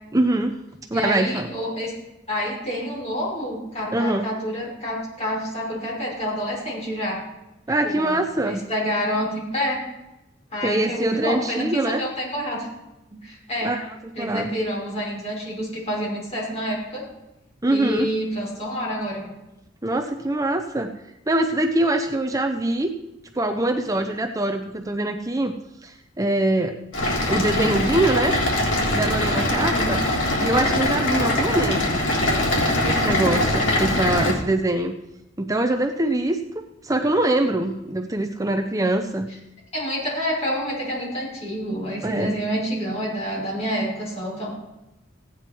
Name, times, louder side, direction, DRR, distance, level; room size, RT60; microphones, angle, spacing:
voice 1, 0.1-0.6 0.9-1.5 3.9-4.3 7.7-8.6 10.6-12.0 13.6-13.8 14.2-14.5 17.6-18.1 19.8-20.9 21.3-22.9 23.3-25.5 25.8-26.8 27.3-28.3 28.9-30.0 30.4-32.0 32.8-34.9 35.4-39.3 42.0-42.4, right 1 dB, 20° right, 6 dB, 0.6 m, -23 dB
voice 2, 0.9-1.9 2.3-7.2 7.8-8.2 8.4-9.8 10.5-12.7 13.1-13.7 14.2-17.0 17.7-19.3 29.7-29.9 39.7-44.5, equal, 35° left, -4 dB, 6.1 m, -28 dB
sound 1, 26.9-34.3, left 1 dB, 85° left, 3.5 m, -22 dB
16.0 x 9.5 x 4.6 m, 0.95 s
head